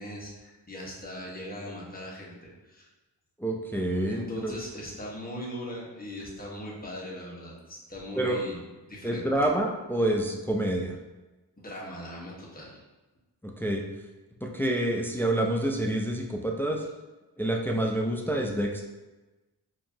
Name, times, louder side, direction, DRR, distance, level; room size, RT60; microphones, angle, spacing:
voice 1, 0.0-2.9 4.1-8.6 8.9-9.2 11.6-12.8, left 1 dB, 20° left, -4 dB, 1.2 m, -39 dB
voice 2, 3.4-4.5 8.2-8.4 9.0-11.0 13.4-13.8 14.4-16.8 17.4-18.9, right 1 dB, 5° left, 1 dB, 0.3 m, -27 dB
4.6 x 2.7 x 2.7 m, 1.1 s
cardioid pair, 85°, 42 cm